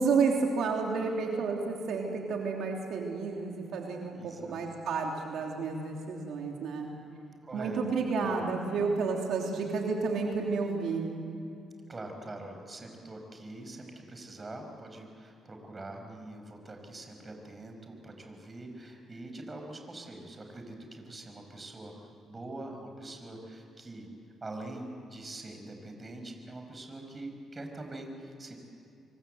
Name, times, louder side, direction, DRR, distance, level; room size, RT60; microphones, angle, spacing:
voice 1, 0.0-6.9 7.5-11.1, right 4 dB, 75° right, 1 dB, 3.2 m, -31 dB
voice 2, 4.1-4.6 7.4-7.8 8.1-8.4 11.9-21.9 22.3-24.1 24.4-28.6, right 2 dB, 25° right, 4 dB, 5.3 m, -44 dB
27.0 x 23.5 x 8.0 m, 2.6 s
cardioid pair, 90°, 0 cm